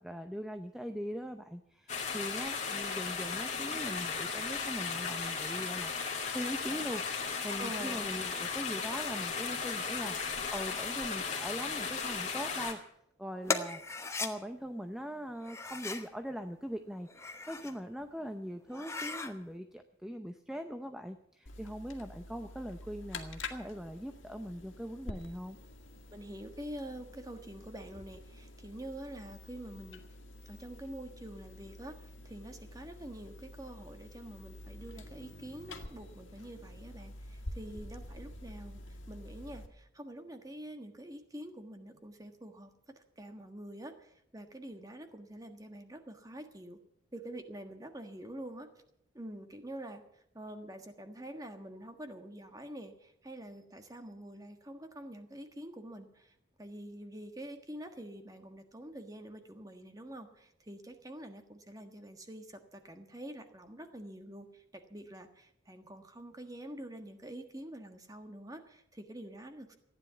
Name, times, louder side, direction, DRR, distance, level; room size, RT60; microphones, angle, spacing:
voice 1, 0.0-12.8 13.2-25.6, equal, 5° right, 7 dB, 0.6 m, -41 dB
sound 1, 1.9-12.7, left 5 dB, 35° left, 2.3 m, -36 dB
voice 2, 7.6-8.1 26.1-30.0 30.5-46.8 47.1-48.7 49.1-50.0 50.3-69.8, right 1 dB, 20° right, 7 dB, 1.4 m, -46 dB
sound 2, 13.5-14.3 15.4-16.1 17.0-17.8 18.2-18.3 18.7-19.3, left 3 dB, 15° left, 0.9 m, -37 dB
sound 3, 21.5-39.7, left 2 dB, 75° left, 1.8 m, -48 dB
15.0 x 10.0 x 8.2 m, 0.76 s
head